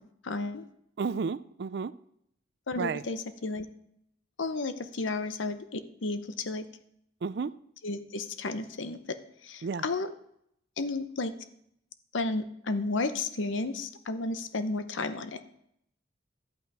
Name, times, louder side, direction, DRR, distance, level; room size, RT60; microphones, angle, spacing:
voice 1, 0.2-0.6 2.7-3.7 4.4-6.7 7.8-9.2 9.4-10.1 10.8-11.3 12.1-15.4, left 3 dB, 85° left, 11 dB, 0.8 m, -32 dB
voice 2, 1.0-1.9 2.8-3.0 7.2-7.6 9.6-9.8, right 5 dB, 55° right, 17 dB, 0.4 m, -32 dB
11.5 x 8.4 x 4.8 m, 0.73 s
head